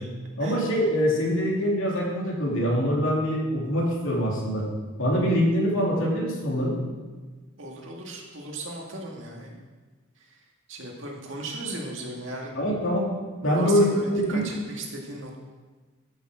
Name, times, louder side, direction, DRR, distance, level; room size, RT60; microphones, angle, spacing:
voice 1, 0.4-4.6 5.0-6.8 12.5-13.1 13.4-14.5, equal, 70° left, -2 dB, 2.8 m, -24 dB
voice 2, 7.6-9.6 10.7-12.5 13.5-15.4, right 2 dB, 65° right, 0 dB, 2.0 m, -36 dB
13.0 x 7.1 x 5.0 m, 1.4 s
head